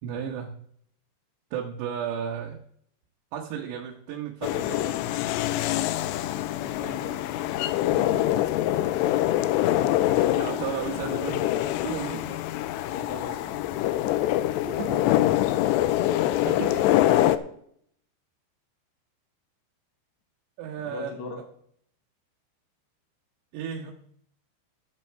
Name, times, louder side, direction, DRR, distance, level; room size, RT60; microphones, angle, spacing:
voice 1, 0.0-0.5 1.5-2.6 3.3-4.9 7.9-8.4 10.4-11.4 11.8-12.4 14.7-15.3 16.4-16.9 20.6-21.1 23.5-23.9, right 8 dB, 75° right, -1 dB, 3.2 m, -34 dB
sound 1, 4.4-17.4, left 14 dB, 85° left, 2.6 m, -25 dB
voice 2, 6.6-7.5 12.9-13.6 20.8-21.4, left 4 dB, 60° left, 2 dB, 2.1 m, -39 dB
15.0 x 7.6 x 4.5 m, 0.66 s
omnidirectional pair, 5.4 m